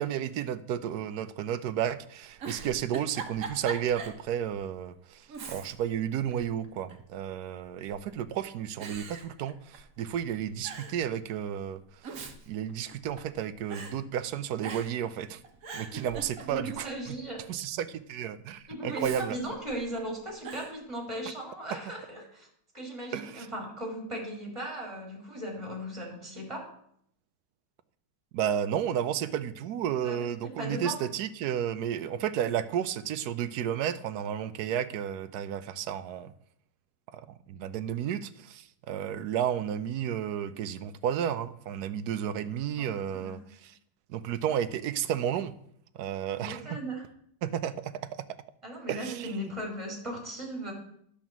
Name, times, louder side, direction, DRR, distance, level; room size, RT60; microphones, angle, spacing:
voice 1, 0.0-15.4 15.7-17.1 17.5-19.4 23.1-23.5 28.3-36.3 37.1-43.7 44.1-45.5 45.9-46.8 47.4-47.9 48.9-49.5, right 9 dB, 70° right, 12 dB, 1.2 m, -32 dB
Giggle, 2.4-4.2 4.6-4.7 5.3-6.0 6.3-7.1 7.9-8.3 8.8-10.0 10.3-10.4 10.6-11.0 11.8-13.4 13.7-14.0 14.6-15.1 15.4-16.8 18.9-20.0 20.4-20.8, right 5 dB, 55° right, 1.5 m, -41 dB
voice 2, 16.4-17.4 18.7-22.5 22.7-26.7 30.0-31.0 42.8-43.3 46.3-47.0 48.6-50.7, right 1 dB, 15° right, 1 dB, 3.0 m, -37 dB
11.0 x 5.1 x 7.3 m, 0.67 s
omnidirectional pair, 1.9 m